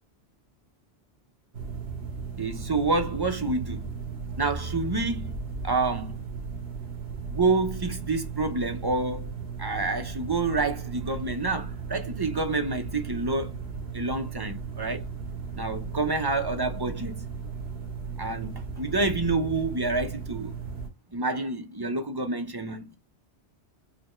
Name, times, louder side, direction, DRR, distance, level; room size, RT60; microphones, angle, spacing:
sound 1, 1.5-20.9, right 5 dB, 70° right, 1.4 m, -36 dB
voice 1, 2.4-3.9 4.4-5.4 5.6-6.2 7.3-9.3 9.6-13.5 13.9-15.0 15.6-17.2 18.2-20.5 21.1-23.0, right 3 dB, 30° right, 0.5 m, -28 dB
5.0 x 2.3 x 3.0 m
omnidirectional pair, 1.1 m